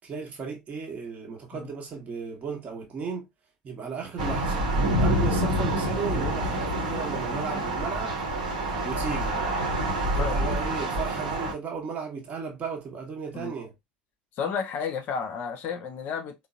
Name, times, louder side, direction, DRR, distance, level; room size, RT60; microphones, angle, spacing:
voice 1, 0.0-3.3 3.6-4.7 5.0-8.1 8.8-9.4 10.0-13.7, right 5 dB, 35° right, 1.0 m, -35 dB
Thunder / Rain, 4.2-11.5, right 1 dB, 70° right, 0.9 m, -27 dB
voice 2, 14.4-16.3, left 6 dB, 45° left, 0.5 m, -32 dB
3.7 x 2.0 x 2.3 m
figure-of-eight pair, 70°, 4 cm